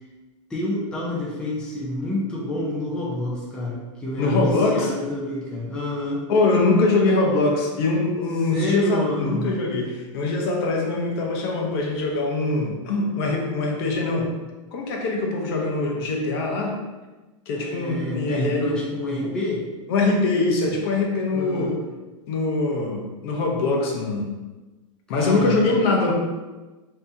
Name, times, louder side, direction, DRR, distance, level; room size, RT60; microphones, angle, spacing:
voice 1, 0.5-6.3 8.5-9.5 17.5-19.6 21.3-21.8 25.1-25.8, left 1 dB, 5° left, -6 dB, 0.5 m, -28 dB
voice 2, 4.2-4.9 6.3-14.3 14.7-16.8 17.5-18.8 19.2-19.3 19.9-21.7 22.3-24.3 25.1-26.1, left 3 dB, 50° left, 0 dB, 0.7 m, -23 dB
3.3 x 2.7 x 2.7 m, 1.2 s
supercardioid pair, 145°, 17 cm